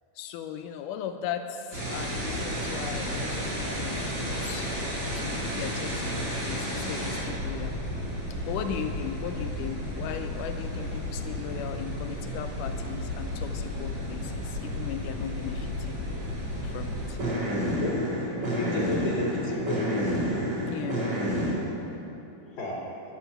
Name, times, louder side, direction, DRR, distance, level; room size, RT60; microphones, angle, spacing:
voice 1, 0.2-4.7 5.1-7.8 8.4-16.0 16.6-17.2 20.6-21.1, left 8 dB, 90° left, 6 dB, 1.8 m, -37 dB
sound 1, 1.7-21.5, equal, 40° right, 4.4 m, -31 dB
voice 2, 17.8-18.1 18.6-20.2 22.6-22.9, left 3 dB, 35° left, -3 dB, 3.1 m, -31 dB
11.5 x 9.8 x 9.1 m, 3.0 s
omnidirectional pair, 4.3 m